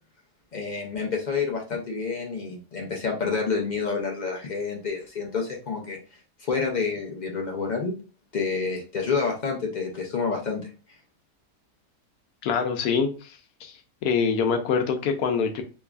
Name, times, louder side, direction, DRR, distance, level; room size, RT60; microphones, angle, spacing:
voice 1, 0.5-6.0 6.4-7.9 8.3-10.7, left 5 dB, 65° left, 0 dB, 0.4 m, -28 dB
voice 2, 12.4-13.7 14.0-15.6, left 6 dB, 90° left, 5 dB, 1.1 m, -25 dB
3.4 x 3.0 x 2.3 m, 0.34 s
omnidirectional pair, 1.6 m